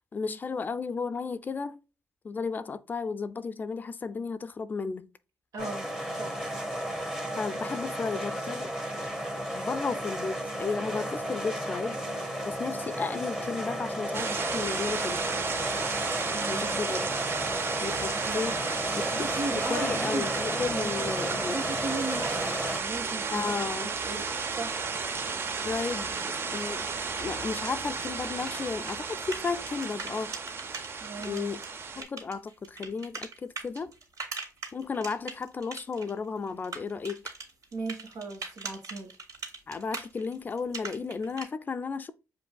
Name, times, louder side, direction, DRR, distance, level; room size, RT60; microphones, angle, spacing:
voice 1, 0.1-1.8 2.2-5.1 7.4-9.2 9.5-15.3 16.5-17.1 17.8-18.5 19.3-19.4 19.7-21.6 23.3-23.9 25.6-26.9 27.2-30.4 31.2-31.6 32.0-33.9 34.7-37.2 39.7-42.1, left 5 dB, 30° left, 0.4 m, -34 dB
voice 2, 5.5-6.3 16.3-16.7 18.2-18.8 19.1-20.3 20.7-21.1 21.5-23.5 23.8-24.2 24.5-24.7 31.0-31.5 37.7-39.2, right 3 dB, 80° right, 1.5 m, -37 dB
sound 1, 5.6-22.8, equal, 10° right, 1.0 m, -33 dB
sound 2, 14.1-32.0, right 5 dB, 40° right, 0.5 m, -33 dB
sound 3, 28.0-30.9 31.2-36.1 36.4-41.4, right 3 dB, 65° right, 2.6 m, -40 dB
7.7 x 2.6 x 2.2 m
cardioid pair, 140°, 6 cm